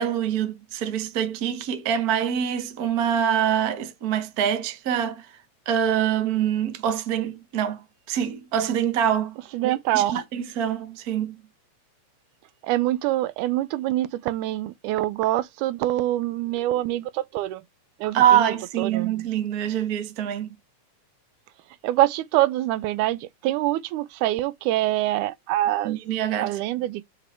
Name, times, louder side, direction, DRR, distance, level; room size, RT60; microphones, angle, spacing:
voice 1, 0.0-5.3 5.7-9.4 9.6-11.4 18.1-20.5 25.8-26.6, right 9 dB, 65° right, 0.9 m, -25 dB
voice 2, 9.5-10.1 12.6-17.6 18.0-19.1 21.8-26.0 26.4-27.0, right 15 dB, 85° right, 2.0 m, -25 dB
5.8 x 5.0 x 4.4 m
omnidirectional pair, 3.5 m